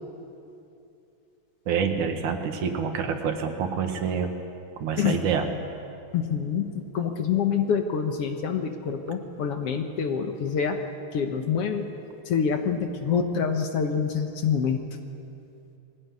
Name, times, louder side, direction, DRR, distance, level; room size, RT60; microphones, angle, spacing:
voice 1, 1.7-4.3 4.8-5.5, right 6 dB, 90° right, 5 dB, 3.1 m, -27 dB
voice 2, 6.1-10.8 11.1-11.9 12.3-14.8, left 7 dB, 60° left, 5 dB, 2.0 m, -26 dB
21.5 x 16.5 x 9.7 m, 2.6 s
omnidirectional pair, 3.3 m